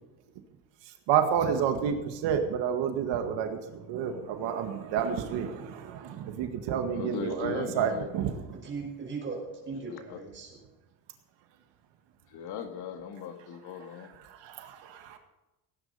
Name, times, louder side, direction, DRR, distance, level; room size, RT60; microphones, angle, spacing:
voice 1, 1.1-8.3 14.3-15.2, right 8 dB, 70° right, 5 dB, 1.9 m, -29 dB
voice 2, 6.9-8.1 9.9-10.2 12.3-14.1, left 7 dB, 55° left, 6 dB, 1.9 m, -38 dB
voice 3, 8.5-10.7, right 4 dB, 25° right, 0 dB, 5.5 m, -38 dB
17.5 x 10.0 x 5.5 m, 1.0 s
cardioid pair, 160°, 45 cm